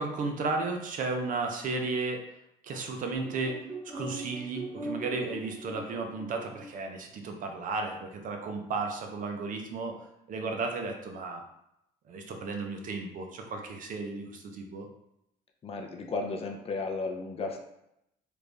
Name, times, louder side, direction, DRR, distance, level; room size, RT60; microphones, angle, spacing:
voice 1, 0.0-2.3 2.6-11.4 12.1-14.9, right 3 dB, 50° right, 3 dB, 0.6 m, -34 dB
sound 1, 3.1-6.8, right 2 dB, 20° right, 1.3 m, -41 dB
voice 2, 15.6-17.6, left 3 dB, 35° left, 2 dB, 0.6 m, -34 dB
3.3 x 2.5 x 3.3 m, 0.81 s
cardioid pair, 110°, 17 cm